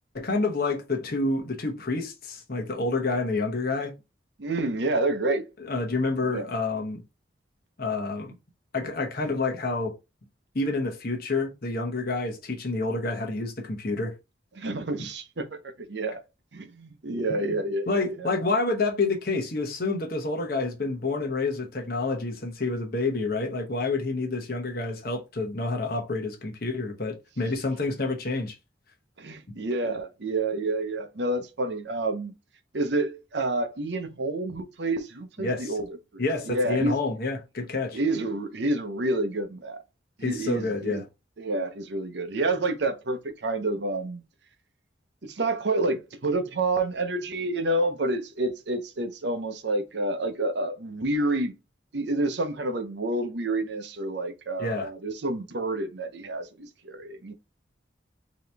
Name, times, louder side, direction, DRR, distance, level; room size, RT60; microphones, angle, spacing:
voice 1, 0.1-3.9 5.6-7.0 7.8-8.3 8.7-9.9 10.5-14.1 17.3-28.5 35.4-35.8 36.2-38.0 40.2-41.1 54.6-54.9, left 3 dB, 50° left, 1.0 m, -28 dB
voice 2, 4.4-5.5 6.3-6.5 14.6-16.2 16.5-18.3 29.2-32.3 32.7-35.9 36.1-37.0 37.9-39.8 40.2-41.0 41.4-44.2 45.2-51.5 51.9-57.3, right 2 dB, 65° right, 0.7 m, -29 dB
3.8 x 2.9 x 3.4 m
head